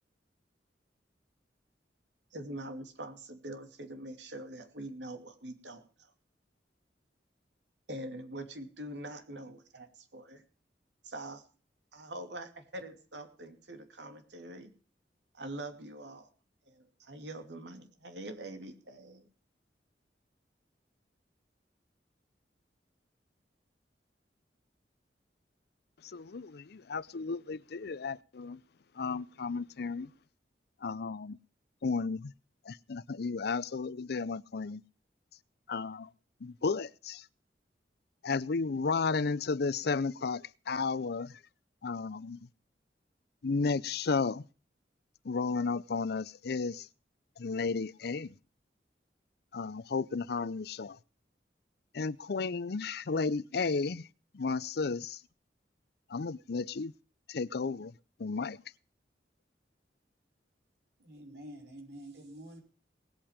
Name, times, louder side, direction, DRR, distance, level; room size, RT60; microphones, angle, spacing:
voice 1, 2.3-6.1 7.9-10.4 11.0-11.4 11.9-14.7 15.3-16.3 16.7-19.2, right 1 dB, 85° right, 2.6 m, -44 dB
voice 2, 26.0-28.6 29.0-30.1 30.8-31.4 31.8-32.3 32.6-34.8 35.7-36.1 36.4-37.3 38.2-41.4 41.8-42.5 43.4-44.5 45.2-46.9 47.4-48.4 49.5-51.0 51.9-54.1 54.3-55.2 56.1-56.9 57.3-57.9 58.2-58.6, left 4 dB, 65° left, 0.6 m, -33 dB
voice 3, 61.0-62.6, right 1 dB, 70° right, 5.6 m, -48 dB
19.5 x 8.7 x 5.0 m
head